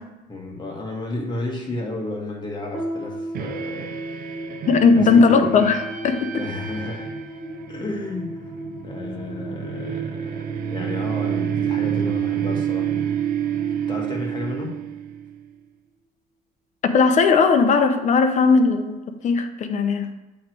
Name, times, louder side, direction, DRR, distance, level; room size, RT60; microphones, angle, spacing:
voice 1, 0.3-4.4 4.9-5.5 6.3-7.1 7.7-8.4 8.8-12.9 13.9-14.7, left 2 dB, 25° left, 0 dB, 1.6 m, -32 dB
sound 1, 2.7-15.2, right 1 dB, 5° right, 2.1 m, -36 dB
sound 2, 3.3-15.4, right 10 dB, 60° right, 0.6 m, -29 dB
voice 2, 4.7-5.8 6.0-6.4 16.8-20.1, left 4 dB, 45° left, 7 dB, 0.8 m, -17 dB
8.3 x 3.2 x 4.5 m, 1.1 s
cardioid pair, 110°, 17 cm